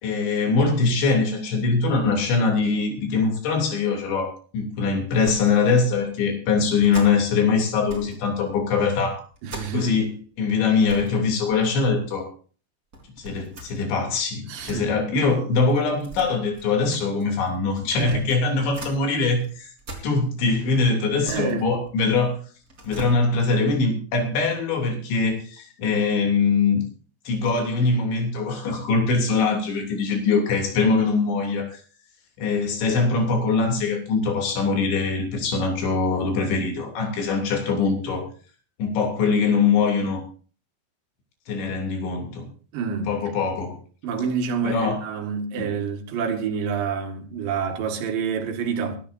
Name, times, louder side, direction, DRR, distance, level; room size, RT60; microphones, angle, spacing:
voice 1, 0.0-9.2 9.7-10.1 10.4-12.3 13.2-19.7 20.0-22.4 22.8-26.8 27.3-31.8 32.4-38.3 38.8-40.2 41.5-42.5 43.1-43.8 44.6-45.0 45.6-45.7, left 4 dB, 85° left, 5.4 m, -22 dB
sound 1, 5.2-5.6 5.9-6.1 6.8-7.4 7.8-8.2 8.5-10.1 10.4-10.5 10.7-11.2 11.5-12.1 12.9-14.8 15.7-19.0 19.4-20.6 21.0-22.3 22.6-23.1, right 1 dB, 20° right, 4.1 m, -42 dB
voice 2, 9.4-10.1 14.5-15.0 17.9-18.3 21.3-21.7 42.7-43.1 44.0-49.0, right 6 dB, 80° right, 4.2 m, -28 dB
23.5 x 12.5 x 2.7 m
omnidirectional pair, 5.1 m